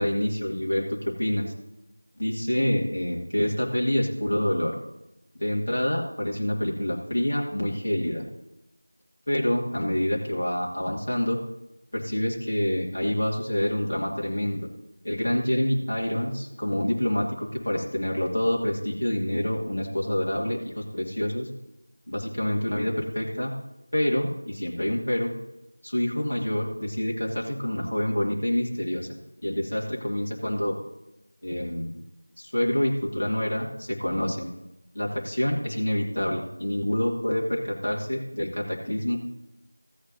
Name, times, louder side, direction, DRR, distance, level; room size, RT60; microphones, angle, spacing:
voice 1, 0.0-1.5 2.2-4.8 5.4-8.3 9.3-11.4 11.9-14.7 15.0-21.5 22.1-23.5 23.9-25.3 25.8-29.1 29.4-30.8 31.4-31.9 32.4-34.5 34.9-39.2, left 1 dB, 50° left, -4 dB, 2.1 m, -27 dB
15.5 x 8.6 x 2.7 m, 0.90 s
figure-of-eight pair, 175°, 0 cm